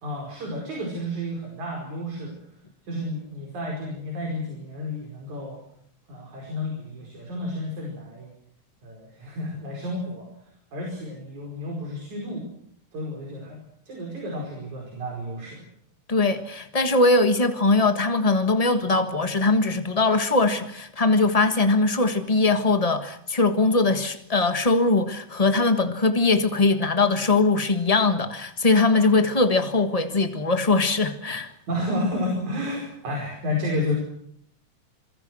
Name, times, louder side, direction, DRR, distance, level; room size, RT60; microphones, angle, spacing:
voice 1, 0.0-2.3 2.8-5.6 6.1-8.3 8.8-10.3 10.7-12.5 12.9-13.6 13.9-15.6 31.7-34.0, left 1 dB, 65° right, 6.4 m, -31 dB
voice 2, 16.1-31.5, left 3 dB, 75° left, 0.3 m, -21 dB
27.0 x 23.0 x 6.3 m
omnidirectional pair, 3.6 m